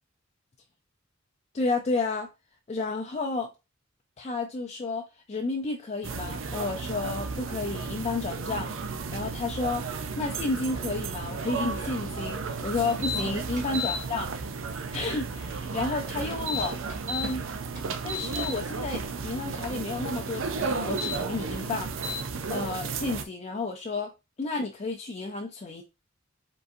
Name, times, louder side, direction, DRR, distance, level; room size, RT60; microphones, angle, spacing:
voice 1, 1.5-2.3 2.7-3.5 4.2-8.7 9.1-9.8 10.2-14.3 14.7-16.8 17.1-17.4 18.0-21.9 22.5-24.1 24.4-25.8, left 3 dB, 35° left, 0.4 m, -31 dB
sound 1, 6.0-23.2, right 4 dB, 75° right, 0.5 m, -34 dB
sound 2, 13.0-13.2 13.6-14.0 16.3-17.3 17.8-18.5 20.8-21.2 22.0-22.2, left 4 dB, 40° right, 1.9 m, -32 dB
4.9 x 3.9 x 2.6 m
head